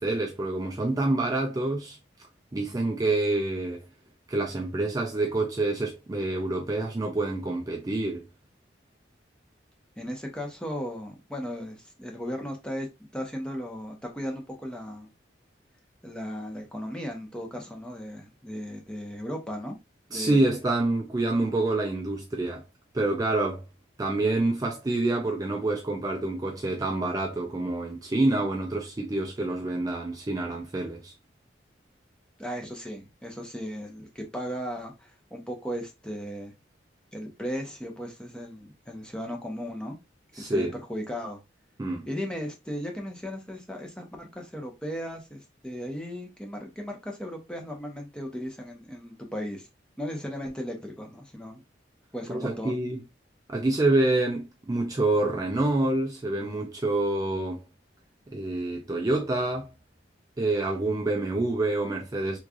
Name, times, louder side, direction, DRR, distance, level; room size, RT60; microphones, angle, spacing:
voice 1, 0.0-2.0 2.5-3.9 4.3-8.3 20.1-22.6 22.9-23.6 24.0-31.1 40.3-40.7 41.8-42.1 52.3-53.0 53.5-57.6 58.3-59.7 60.4-62.4, right 2 dB, 20° right, 0.3 m, -27 dB
voice 2, 10.0-12.9 13.1-15.1 16.0-19.8 20.1-20.5 32.4-36.5 37.1-40.0 40.3-41.4 42.1-49.7 50.0-51.6 52.1-52.7, equal, 5° left, 0.7 m, -36 dB
3.6 x 3.1 x 2.4 m
head